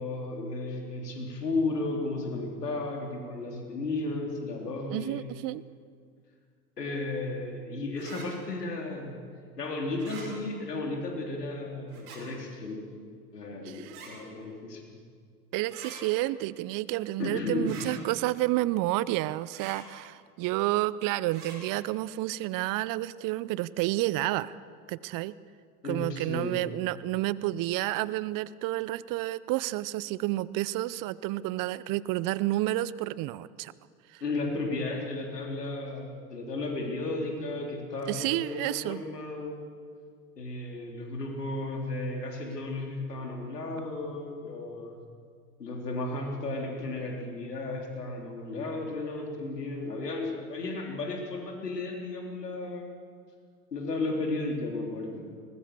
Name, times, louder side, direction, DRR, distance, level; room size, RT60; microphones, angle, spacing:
voice 1, 0.0-5.3 6.8-9.1 9.6-12.8 13.3-14.8 17.2-17.7 25.8-26.6 34.2-39.6 40.4-45.0 45.6-52.9 53.7-55.3, left 2 dB, 90° left, 1 dB, 3.6 m, -34 dB
voice 2, 4.9-5.6 13.6-13.9 15.5-24.6 24.9-25.3 25.8-33.7 34.1-34.2 38.1-39.0, right 17 dB, 45° right, 19 dB, 0.7 m, -30 dB
sound 1, 8.0-8.3 9.9-10.3 11.9-12.2 13.8-14.1 15.7-15.9 17.6-17.9 19.5-19.8 21.3-21.6, right 5 dB, 65° right, 7.2 m, -45 dB
22.0 x 20.0 x 6.8 m, 2.1 s
hypercardioid pair, 80°, 46 cm